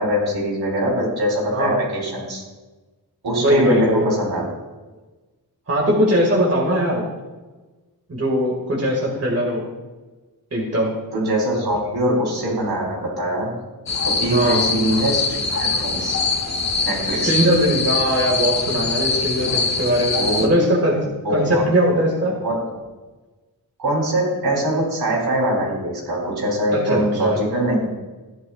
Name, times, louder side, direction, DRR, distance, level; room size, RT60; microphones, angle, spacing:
voice 1, 0.0-2.4 3.2-4.5 11.1-13.5 14.0-16.2 16.8-17.5 20.1-20.5 21.2-21.7 22.4-22.6 23.8-27.9, right 1 dB, 75° right, -3 dB, 3.8 m, -22 dB
voice 2, 1.5-1.8 3.4-4.0 5.7-7.1 8.1-9.6 10.5-10.9 14.3-14.6 17.1-21.0 21.3-22.3 26.7-27.4, equal, 40° right, -3 dB, 2.1 m, -20 dB
sound 1, 13.9-20.5, left 4 dB, 45° left, 1.1 m, -23 dB
14.0 x 10.5 x 2.5 m, 1.2 s
wide cardioid pair, 110°, 38 cm